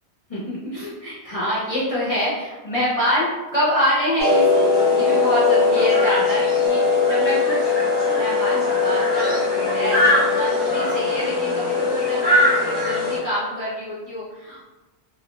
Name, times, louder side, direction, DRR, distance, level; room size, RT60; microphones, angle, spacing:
voice 1, 0.3-14.6, equal, 45° left, -8 dB, 0.5 m, -26 dB
sound 1, 4.2-13.2, left 3 dB, 20° left, 0.9 m, -20 dB
sound 2, 6.7-7.2 7.7-8.2 8.7-9.2 9.7-10.2 10.7-11.2, left 1 dB, 60° right, 0.9 m, -31 dB
2.4 x 2.1 x 3.0 m, 1.1 s
omnidirectional pair, 1.2 m